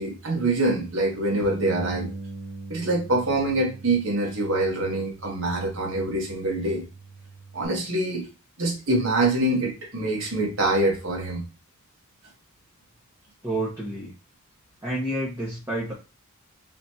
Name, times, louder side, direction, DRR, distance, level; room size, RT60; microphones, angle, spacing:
voice 1, 0.0-2.1 2.7-6.8 7.5-8.3 8.6-11.4, right 2 dB, 65° right, 1.3 m, -25 dB
Bass guitar, 1.4-7.7, right 3 dB, 90° right, 1.6 m, -40 dB
voice 2, 13.4-14.1 14.8-15.9, right 1 dB, 15° right, 1.4 m, -29 dB
4.2 x 3.0 x 2.8 m
head